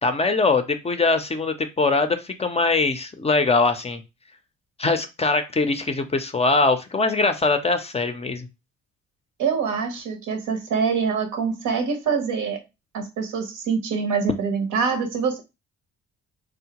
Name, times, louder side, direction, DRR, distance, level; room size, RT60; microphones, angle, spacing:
voice 1, 0.0-4.0 4.8-8.5, left 3 dB, 20° left, 8 dB, 0.4 m, -22 dB
voice 2, 9.4-12.6 12.9-15.4, right 5 dB, 90° right, 4 dB, 0.9 m, -25 dB
3.6 x 2.0 x 2.8 m, 0.25 s
cardioid pair, 90°, 30 cm